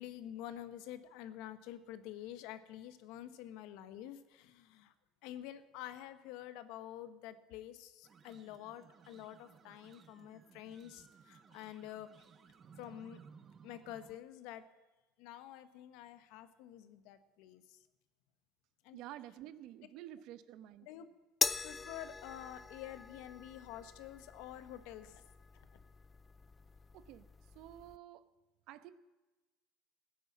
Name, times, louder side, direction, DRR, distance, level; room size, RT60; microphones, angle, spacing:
voice 1, 0.0-4.9 5.2-12.1 12.8-13.2 13.6-14.6 15.2-17.8 18.8-19.0 20.8-21.1 21.6-25.2, left 12 dB, 75° left, 12 dB, 1.2 m, -48 dB
sound 1, 8.0-14.2, right 6 dB, 30° right, 0.8 m, -60 dB
voice 2, 18.9-20.9 26.9-27.3 27.5-28.2 28.7-28.9, right 13 dB, 65° right, 13 dB, 0.9 m, -50 dB
sound 2, 21.4-28.0, left 4 dB, 15° left, 0.4 m, -42 dB
15.5 x 10.0 x 7.3 m, 1.1 s
cardioid pair, 135°, 0 cm